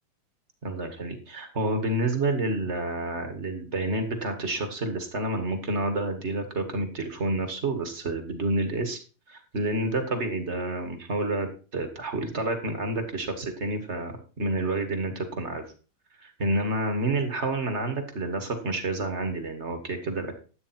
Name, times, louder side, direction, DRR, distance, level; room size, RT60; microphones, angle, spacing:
voice 1, 0.6-9.0 9.3-15.6 16.2-20.3, right 2 dB, 30° right, 6 dB, 1.2 m, -29 dB
12.5 x 8.7 x 4.4 m, 0.37 s
omnidirectional pair, 4.3 m